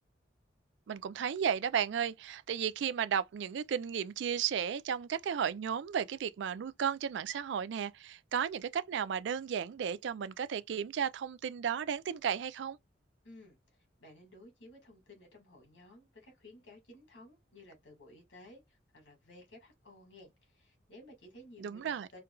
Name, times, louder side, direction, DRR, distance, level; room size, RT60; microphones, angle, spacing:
voice 1, 0.9-12.8 21.6-22.1, right 8 dB, 75° right, 0.3 m, -34 dB
voice 2, 13.2-22.2, left 1 dB, 85° left, 1.8 m, -56 dB
4.3 x 2.4 x 2.2 m
head